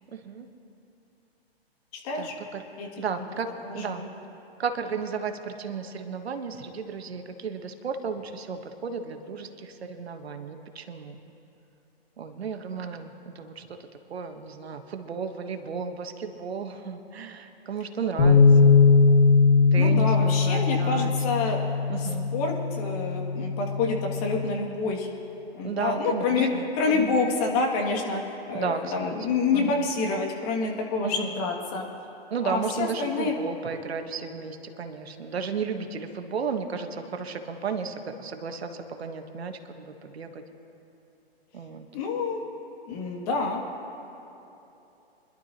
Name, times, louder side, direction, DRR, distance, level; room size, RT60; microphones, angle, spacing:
voice 1, 0.1-0.5 2.1-2.6 3.0-3.5 3.7-4.0 4.6-11.2 12.2-13.7 14.1-18.8 19.7-21.1 21.9-22.3 25.6-27.1 28.5-29.9 31.0-31.3 32.3-40.4 41.5-41.9, right 6 dB, 75° right, 6 dB, 1.3 m, -34 dB
voice 2, 1.9-2.3 2.8-2.9 3.2-3.3 3.6-4.1 19.8-21.6 22.0-25.1 25.5-26.5 26.7-28.2 28.5-31.8 32.4-33.3 41.9-42.4 42.9-43.6, left 4 dB, 40° left, 1 dB, 2.3 m, -27 dB
sound 1, 18.2-24.4, left 4 dB, 60° left, 2.3 m, -20 dB
25.0 x 11.5 x 2.9 m, 3.0 s
hypercardioid pair, 135°, 31 cm